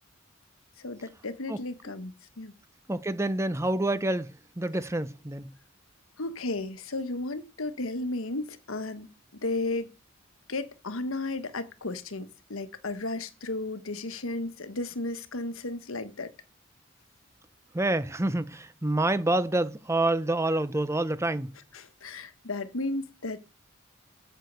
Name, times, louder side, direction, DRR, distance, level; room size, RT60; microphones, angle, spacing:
voice 1, 0.8-2.5 6.2-9.9 10.5-16.3 21.7-23.4, left 2 dB, 85° left, 1.4 m, -34 dB
voice 2, 2.9-5.5 17.7-21.5, right 2 dB, 15° right, 0.7 m, -27 dB
8.2 x 6.7 x 8.1 m
head